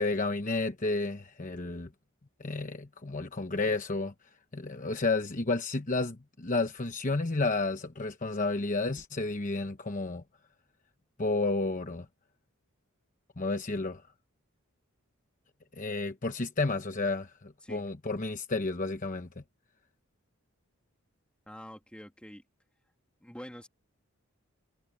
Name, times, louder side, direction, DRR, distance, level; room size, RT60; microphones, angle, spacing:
voice 1, 0.0-1.9 2.4-4.1 4.5-10.2 11.2-12.1 13.4-14.0 15.7-19.3, left 3 dB, 35° left, 1.0 m, -31 dB
voice 2, 17.6-17.9 21.5-22.4 23.2-23.7, equal, 5° left, 3.0 m, -46 dB
head